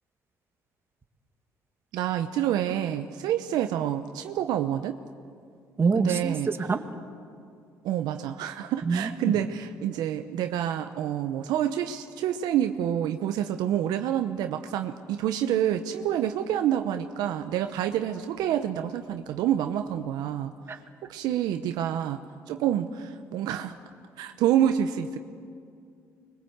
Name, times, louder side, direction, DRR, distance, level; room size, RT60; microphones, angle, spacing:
voice 1, 1.9-5.0 5.9-6.5 7.8-20.5 21.1-22.2 22.5-23.8 24.2-25.3, right 10 dB, 75° right, 7 dB, 0.9 m, -27 dB
voice 2, 5.8-6.8 8.8-9.3 20.7-20.8, right 4 dB, 35° right, 6 dB, 2.2 m, -26 dB
25.5 x 22.0 x 8.1 m, 2.3 s
supercardioid pair, 70°, 7 cm